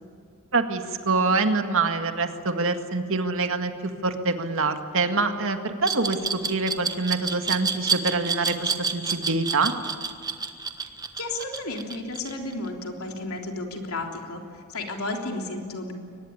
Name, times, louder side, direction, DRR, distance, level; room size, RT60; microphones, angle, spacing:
voice 1, 0.5-3.7 4.0-9.7, right 3 dB, 65° right, 6 dB, 1.9 m, -25 dB
Glass, 5.8-12.7, right 5 dB, 20° right, 1.3 m, -28 dB
voice 2, 11.2-15.9, left 2 dB, 70° left, 2 dB, 3.5 m, -33 dB
23.0 x 20.0 x 9.7 m, 2.4 s
head